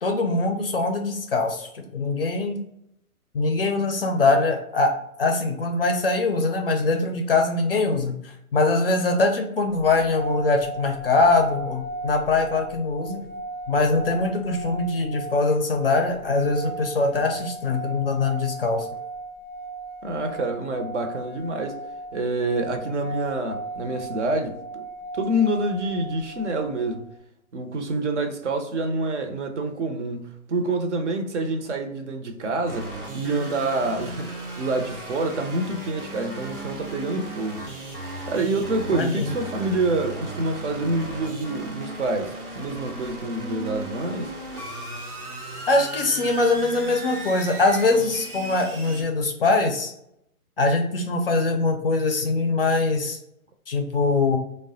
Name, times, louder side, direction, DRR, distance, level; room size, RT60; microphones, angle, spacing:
voice 1, 0.0-2.6 3.3-4.9 5.2-13.2 13.7-18.9 38.9-39.3 45.7-49.9 50.6-53.2 53.7-54.4, left 3 dB, 40° left, 0.4 m, -22 dB
sound 1, 9.9-27.0, right 2 dB, 10° left, 0.7 m, -36 dB
voice 2, 20.0-21.8 22.1-24.8 25.1-27.0 27.5-34.3 34.6-37.6 38.3-44.3, right 2 dB, 55° right, 0.6 m, -27 dB
sound 2, 32.7-49.0, right 2 dB, 90° right, 0.9 m, -36 dB
3.2 x 2.1 x 2.6 m
figure-of-eight pair, 135°, 44 cm